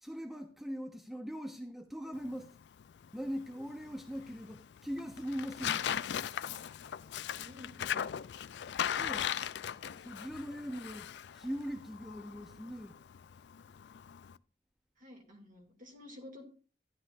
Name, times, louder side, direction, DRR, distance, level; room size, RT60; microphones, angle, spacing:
voice 1, 0.0-2.6 3.1-5.9 9.0-9.3 10.0-13.0, equal, ahead, 0.5 m, -41 dB
Tearing, 2.1-14.4, left 9 dB, 75° left, 0.4 m, -39 dB
voice 2, 7.3-8.0 15.0-16.4, left 1 dB, 45° right, 2.4 m, -52 dB
11.5 x 10.0 x 2.5 m
head